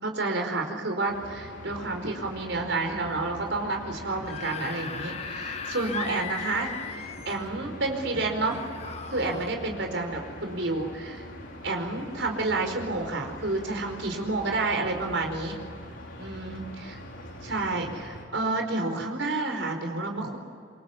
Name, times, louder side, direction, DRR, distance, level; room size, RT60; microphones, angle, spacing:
voice 1, 0.0-8.6 9.1-11.3 11.6-15.6 16.2-16.6 16.9-17.0 17.4-20.4, right 3 dB, 75° right, 3 dB, 4.8 m, -30 dB
sound 1, 1.1-18.2, left 1 dB, 90° left, 4.6 m, -43 dB
Screaming / Screech, 4.1-7.5 8.4-9.5, left 6 dB, 35° left, 1.3 m, -37 dB
26.5 x 24.0 x 8.6 m, 2.4 s
head